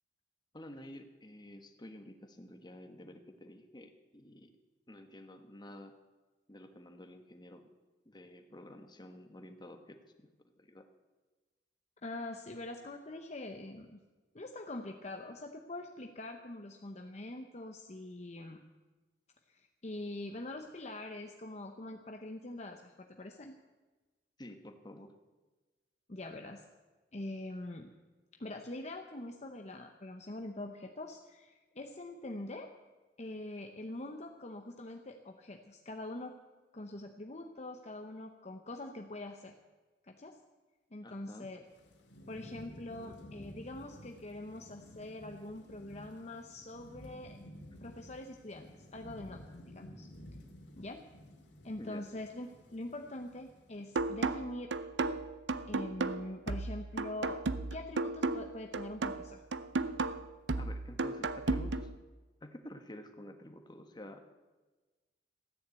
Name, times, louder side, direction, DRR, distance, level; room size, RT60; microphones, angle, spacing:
voice 1, 0.5-4.5 4.9-5.9 6.5-7.6 8.0-10.9 24.4-25.1 41.0-41.5 51.8-52.1 60.6-61.9 62.4-64.2, left 1 dB, 25° left, 6 dB, 1.3 m, -50 dB
voice 2, 12.0-14.0 14.3-18.6 19.5-23.5 26.1-26.6 27.1-27.9 28.4-32.7 33.2-36.4 36.7-39.5 40.0-40.4 40.9-41.6 42.3-47.4 47.8-50.1 50.8-51.0 51.6-54.7 55.7-57.4 57.7-59.4, left 1 dB, 40° left, 4 dB, 0.9 m, -44 dB
Thunderstorm / Rain, 41.7-53.9, left 1 dB, 90° left, 2.4 m, -53 dB
sound 1, 54.0-62.0, right 3 dB, 85° right, 0.7 m, -34 dB
14.5 x 10.0 x 8.2 m, 1.2 s
head